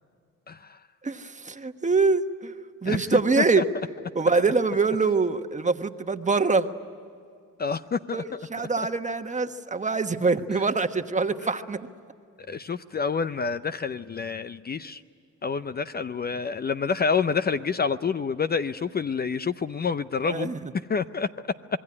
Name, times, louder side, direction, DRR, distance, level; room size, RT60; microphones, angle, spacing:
voice 1, 0.5-0.8 2.9-3.6 7.6-8.4 8.8-8.9 10.5-10.6 11.4-11.5 12.5-15.0 15.4-20.5 20.9-21.3, left 5 dB, 30° left, 11 dB, 0.6 m, -28 dB
voice 2, 1.0-2.5 2.8-3.6 4.1-6.7 8.1-11.8 20.2-20.6, right 4 dB, 25° right, 7 dB, 1.3 m, -24 dB
26.5 x 21.0 x 9.9 m, 2.3 s
cardioid pair, 90°, 30 cm